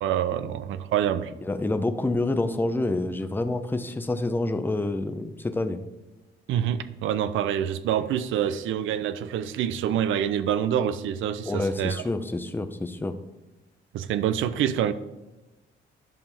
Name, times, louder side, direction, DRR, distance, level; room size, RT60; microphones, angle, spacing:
voice 1, 0.0-1.3 6.5-12.0 13.9-14.9, right 10 dB, 80° right, 13 dB, 0.5 m, -26 dB
voice 2, 1.5-5.8 11.5-13.1, left 2 dB, 10° left, 9 dB, 0.6 m, -27 dB
10.5 x 5.3 x 3.5 m, 1.1 s
cardioid pair, 90°, 20 cm